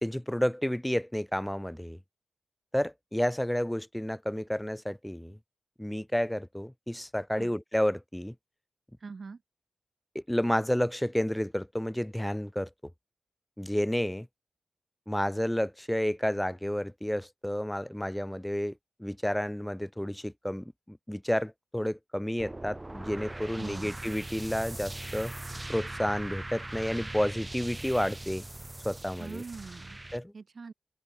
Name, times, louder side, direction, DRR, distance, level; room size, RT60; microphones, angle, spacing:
voice 1, 0.0-2.0 2.7-5.4 5.8-8.3 10.1-12.7 13.6-14.3 15.1-18.7 19.0-25.3 25.7-28.5 28.8-29.4 30.1-30.3, equal, 5° left, 2.5 m, -31 dB
voice 2, 9.0-9.4 23.6-24.0 29.2-30.0 30.3-30.7, right 4 dB, 60° right, 1.5 m, -43 dB
sound 1, 22.4-30.2, right 2 dB, 25° right, 4.1 m, -41 dB
open air
supercardioid pair, 40°, 0 cm